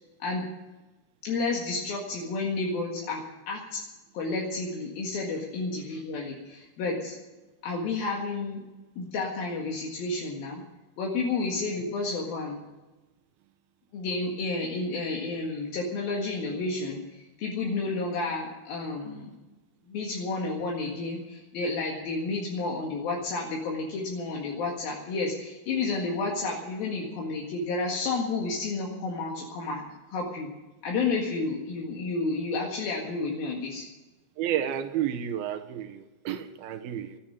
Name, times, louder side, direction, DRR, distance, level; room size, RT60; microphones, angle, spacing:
voice 1, 1.2-3.8 4.1-7.2 7.6-8.6 9.0-10.6 11.0-12.6 13.9-19.3 19.9-29.8 30.1-30.5 30.8-33.8, left 3 dB, 70° left, 3.6 m, -31 dB
voice 2, 34.4-37.2, right 10 dB, 75° right, 2.8 m, -31 dB
14.5 x 10.5 x 8.8 m
omnidirectional pair, 4.5 m